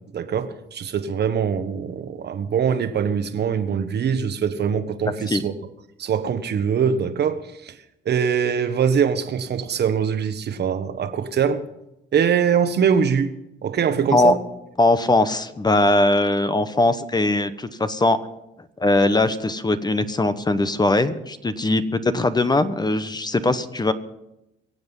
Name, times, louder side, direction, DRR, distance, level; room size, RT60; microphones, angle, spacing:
voice 1, 0.1-5.5 6.0-7.7 8.0-11.6 12.1-13.3 13.6-14.4, right 7 dB, 55° right, 1.3 m, -23 dB
voice 2, 14.8-18.2 18.8-23.9, left 2 dB, 20° left, 1.0 m, -20 dB
23.5 x 7.9 x 5.5 m
cardioid pair, 90°, 20 cm